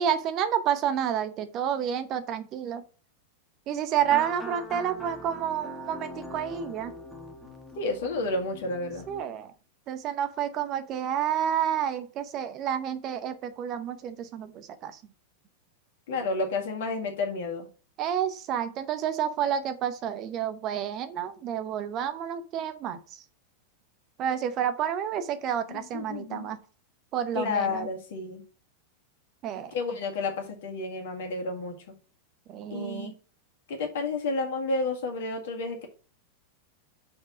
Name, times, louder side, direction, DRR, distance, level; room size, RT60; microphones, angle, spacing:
voice 1, 0.0-2.8 3.7-6.9 9.1-9.5 9.9-15.0 18.0-23.0 24.2-26.6 27.1-27.9 29.4-29.7 32.5-33.1, right 9 dB, 35° right, 10 dB, 0.8 m, -29 dB
sound 1, 4.0-9.2, equal, 5° left, 1.3 m, -42 dB
voice 2, 7.8-9.1 16.1-17.7 25.7-26.5 27.3-28.4 29.7-31.7 32.7-33.1 33.7-35.9, left 3 dB, 55° left, 3 dB, 1.9 m, -31 dB
5.7 x 4.6 x 6.0 m, 0.37 s
figure-of-eight pair, 90°, 0 cm